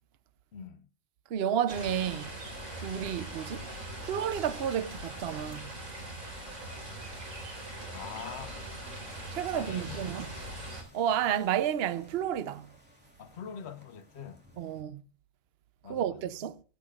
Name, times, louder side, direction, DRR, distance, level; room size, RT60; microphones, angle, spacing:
voice 1, 0.5-0.9 7.9-8.7 9.5-10.1 13.2-14.4 15.8-16.4, left 7 dB, 60° left, 1.0 m, -44 dB
voice 2, 1.3-2.3 2.8-3.7 4.0-5.7 9.3-10.3 10.9-12.7 14.6-15.0 15.9-16.6, right 9 dB, 55° right, 0.8 m, -31 dB
sound 1, 1.7-10.8, right 1 dB, 80° right, 4.6 m, -41 dB
sound 2, 9.1-14.8, left 1 dB, 5° right, 3.1 m, -58 dB
24.0 x 8.4 x 2.4 m
omnidirectional pair, 1.4 m